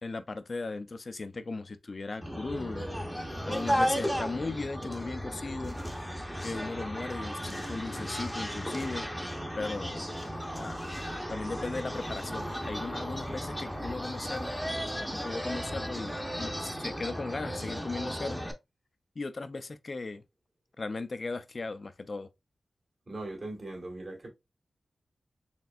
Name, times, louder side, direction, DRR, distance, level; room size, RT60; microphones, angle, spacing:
voice 1, 0.0-2.9 3.5-5.8 6.4-9.1 9.6-10.1 10.5-10.8 11.3-14.5 15.0-18.4 19.2-20.2 20.8-22.3, left 3 dB, 50° left, 0.5 m, -37 dB
sound 1, 2.2-18.5, equal, ahead, 0.8 m, -35 dB
voice 2, 23.1-24.3, right 2 dB, 50° right, 2.1 m, -39 dB
4.3 x 3.3 x 2.4 m
wide cardioid pair, 75°, 0 cm